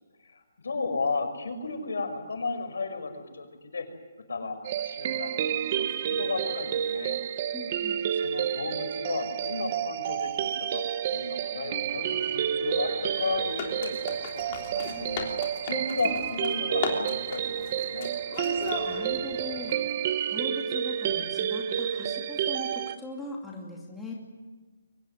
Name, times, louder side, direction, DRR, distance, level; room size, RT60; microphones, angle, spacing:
voice 1, 0.2-3.9 4.3-7.2 8.1-10.3 10.7-10.8 11.1-15.3 15.6-18.1, left 3 dB, 90° left, 6 dB, 5.9 m, -34 dB
sound 1, 4.6-23.0, right 9 dB, 25° right, 0.8 m, -30 dB
voice 2, 7.5-8.0 18.8-19.7 20.3-24.1, left 2 dB, 5° left, -4 dB, 2.5 m, -40 dB
sound 2, 11.9-19.7, left 6 dB, 25° left, 3.2 m, -38 dB
23.5 x 19.5 x 9.8 m, 1.3 s
hypercardioid pair, 175°, 0 cm